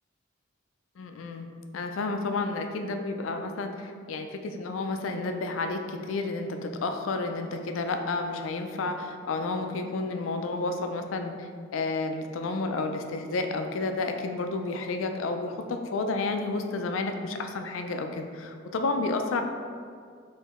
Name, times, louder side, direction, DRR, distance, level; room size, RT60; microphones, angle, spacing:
voice 1, 1.0-1.5 1.7-19.4, left 3 dB, 90° left, 6 dB, 0.4 m, -31 dB
4.5 x 3.0 x 3.6 m, 2.1 s
head